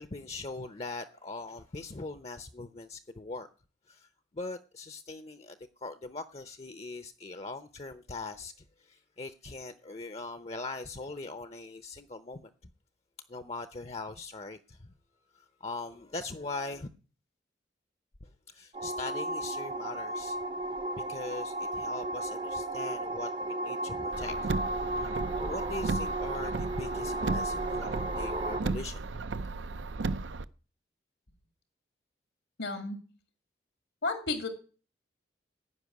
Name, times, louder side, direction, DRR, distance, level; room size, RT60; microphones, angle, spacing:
voice 1, 0.0-3.5 3.9-12.5 13.3-14.9 15.3-16.9 18.5-20.4 21.0-24.5 25.0-25.1 25.3-29.3, left 3 dB, 35° left, 0.6 m, -41 dB
sound 1, 18.7-28.6, right 1 dB, 30° right, 0.6 m, -34 dB
Car, 24.1-30.4, right 3 dB, 85° right, 0.6 m, -35 dB
voice 2, 32.6-33.0 34.0-34.5, left 3 dB, 80° left, 1.9 m, -32 dB
15.5 x 5.5 x 9.5 m
head